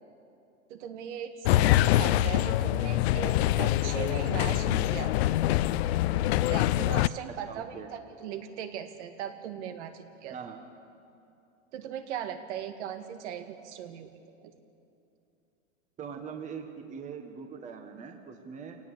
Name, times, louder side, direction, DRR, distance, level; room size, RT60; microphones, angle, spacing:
voice 1, 0.7-5.1 6.5-10.4 11.7-14.1 14.4-14.5, right 9 dB, 60° right, 7 dB, 2.1 m, -38 dB
sound 1, 1.4-7.1, left 14 dB, 55° left, 0.6 m, -25 dB
voice 2, 7.4-7.9 10.3-10.6 16.0-18.8, right 6 dB, 20° right, 4 dB, 1.6 m, -42 dB
27.0 x 18.0 x 8.4 m, 2.7 s
supercardioid pair, 145°, 39 cm